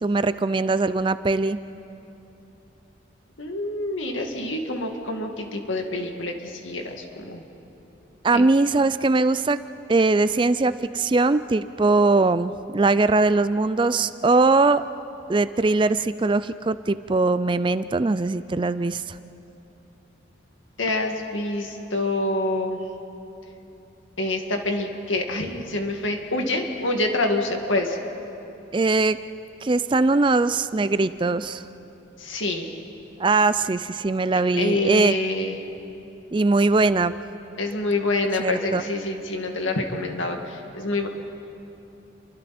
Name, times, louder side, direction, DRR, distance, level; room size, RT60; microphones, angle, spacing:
voice 1, 0.0-1.6 8.2-9.6 9.9-14.8 15.3-19.2 28.7-29.2 29.6-31.6 33.2-35.1 36.3-37.1 38.4-38.8, right 3 dB, 25° right, 14 dB, 0.4 m, -21 dB
voice 2, 3.4-7.4 8.3-8.5 20.8-22.8 24.2-28.0 32.2-32.7 34.6-35.6 37.6-41.1, left 2 dB, 85° left, 3 dB, 2.2 m, -26 dB
29.0 x 24.0 x 4.3 m, 3.0 s
head